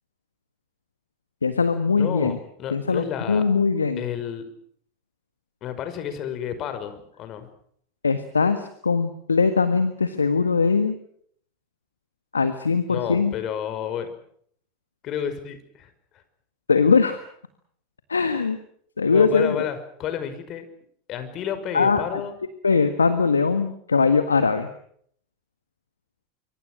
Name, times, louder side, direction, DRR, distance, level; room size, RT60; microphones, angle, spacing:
voice 1, 1.4-2.4 2.7-4.0 8.0-11.0 12.3-13.3 16.7-17.2 18.1-18.6 19.0-19.6 21.7-22.2 22.6-24.7, left 5 dB, 85° left, 10 dB, 1.6 m, -21 dB
voice 2, 2.0-3.5 4.0-4.5 5.6-7.5 12.9-14.1 15.0-15.9 19.1-20.7 21.1-22.3, left 9 dB, 40° left, 10 dB, 5.4 m, -31 dB
26.0 x 25.0 x 6.4 m, 0.64 s
figure-of-eight pair, 85°, 0 cm